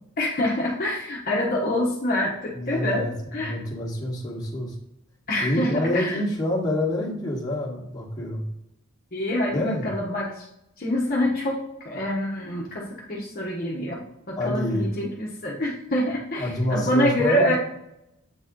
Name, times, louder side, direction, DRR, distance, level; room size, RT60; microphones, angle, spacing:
voice 1, 0.2-3.6 5.3-6.2 9.1-10.5 10.8-14.0 14.3-17.6, left 1 dB, 40° left, -3 dB, 1.0 m, -26 dB
voice 2, 2.5-4.7 5.4-8.4 9.5-9.9 14.3-14.9 16.4-17.6, left 1 dB, 20° left, -5 dB, 1.4 m, -27 dB
7.3 x 4.1 x 3.7 m, 0.84 s
head